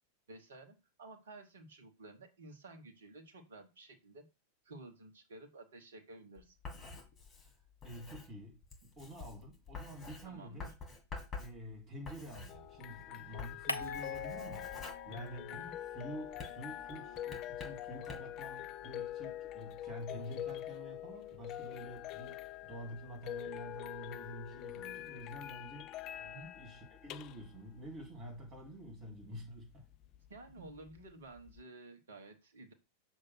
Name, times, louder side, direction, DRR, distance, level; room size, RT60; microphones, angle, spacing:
voice 1, 0.3-4.3 4.6-6.6 10.2-10.7 15.1-15.8 26.2-26.6 30.3-32.7, right 2 dB, 65° right, 1.3 m, -53 dB
Writing, 6.4-13.0 13.3-15.8 16.3-18.4, left 4 dB, 20° left, 2.1 m, -49 dB
voice 2, 7.8-8.6 9.0-10.7 11.4-15.6 15.9-25.9 26.5-29.8 30.6-30.7, equal, 30° right, 3.0 m, -48 dB
sound 1, 12.5-31.6, left 13 dB, 35° left, 0.3 m, -45 dB
sound 2, 13.7-15.4 15.7-18.1, left 1 dB, 90° right, 0.5 m, -45 dB
6.6 x 2.8 x 5.8 m
figure-of-eight pair, 90°, 0 cm